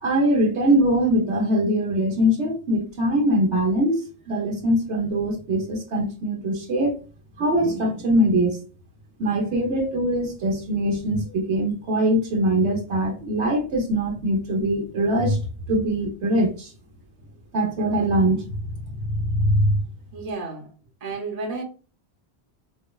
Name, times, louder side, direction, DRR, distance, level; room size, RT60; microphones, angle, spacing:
voice 1, 0.0-4.0 4.3-6.9 7.4-8.6 9.2-15.4 15.7-16.7 17.5-18.5 19.0-19.8, right 1 dB, 85° right, 1.2 m, -22 dB
voice 2, 20.1-20.7 21.0-21.6, right 3 dB, 40° right, 0.9 m, -31 dB
4.7 x 2.1 x 2.3 m
omnidirectional pair, 1.1 m